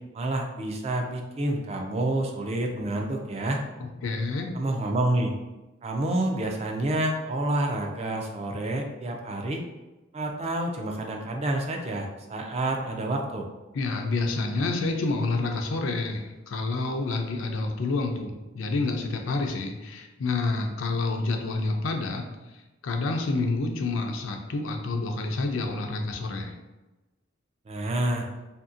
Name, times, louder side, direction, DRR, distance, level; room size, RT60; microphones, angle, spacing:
voice 1, 0.1-3.6 4.5-5.3 5.8-9.6 10.1-13.5 27.7-28.3, right 1 dB, 30° right, 2 dB, 0.3 m, -28 dB
voice 2, 3.8-4.5 13.7-22.6 22.8-26.5, left 3 dB, 80° left, 3 dB, 0.4 m, -28 dB
2.7 x 2.6 x 2.5 m, 1.1 s
head